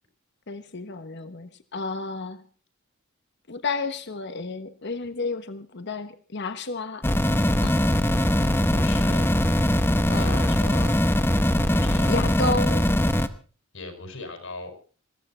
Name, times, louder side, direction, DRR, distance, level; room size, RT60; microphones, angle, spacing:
voice 1, 0.5-2.4 3.5-7.0 7.6-7.7 10.1-10.5 12.1-12.8, left 3 dB, 55° left, 11 dB, 1.1 m, -31 dB
sound 1, 7.0-13.3, left 1 dB, 10° left, 0.9 m, -21 dB
voice 2, 8.1-9.2 10.1-11.1 11.7-12.2 13.7-14.7, left 3 dB, 70° left, 6 dB, 5.6 m, -39 dB
21.0 x 14.5 x 4.4 m, 0.39 s
head